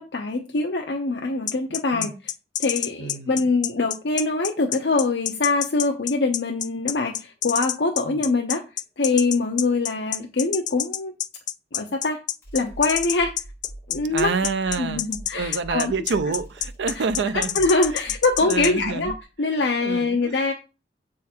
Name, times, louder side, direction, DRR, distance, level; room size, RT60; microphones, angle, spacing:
voice 1, 0.0-2.1 2.6-8.6 9.0-11.2 11.7-12.2 12.5-13.4 13.9-14.3 14.8-15.9 17.0-17.1 17.3-19.1 19.4-20.5, left 3 dB, 80° left, 0.7 m, -23 dB
sound 1, 1.5-18.7, left 12 dB, 45° left, 0.3 m, -27 dB
voice 2, 3.0-3.3 8.1-8.2 14.1-15.0 15.3-17.6 18.4-19.1 19.8-20.4, right 5 dB, 85° right, 0.4 m, -27 dB
sound 2, 3.2-3.3 3.5-4.2 4.6-4.7 5.1-5.2 5.5-6.1 6.6-6.7 7.1-7.2 7.4-8.1 8.5-8.6 9.0-9.1 9.4-10.0 12.4-19.2, right 1 dB, 15° left, 2.2 m, -43 dB
7.3 x 3.8 x 4.4 m
head